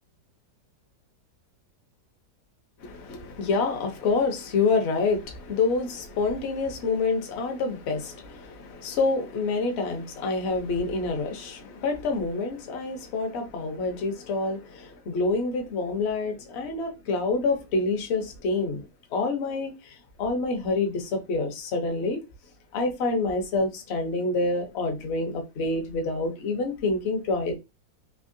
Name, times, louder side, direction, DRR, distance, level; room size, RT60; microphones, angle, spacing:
voice 1, 2.8-22.2 22.7-27.5, left 3 dB, 55° left, 0.8 m, -27 dB
3.6 x 2.8 x 2.6 m
omnidirectional pair, 1.8 m